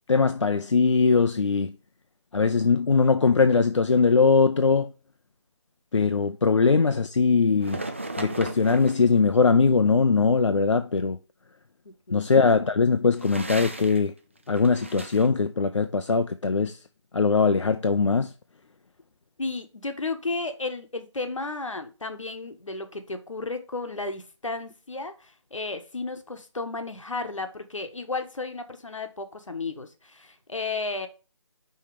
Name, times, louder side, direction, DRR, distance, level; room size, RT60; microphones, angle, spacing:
voice 1, 0.1-1.7 2.3-4.9 5.9-7.8 8.2-11.2 12.1-14.1 14.5-16.8 17.1-18.3, left 4 dB, 70° left, 0.6 m, -21 dB
sound 1, 7.6-9.1 13.1-14.1 14.4-15.3, right 2 dB, 25° right, 0.5 m, -36 dB
voice 2, 11.8-12.3 19.4-31.1, left 3 dB, 85° left, 1.3 m, -33 dB
5.6 x 4.4 x 5.0 m
figure-of-eight pair, 170°, 16 cm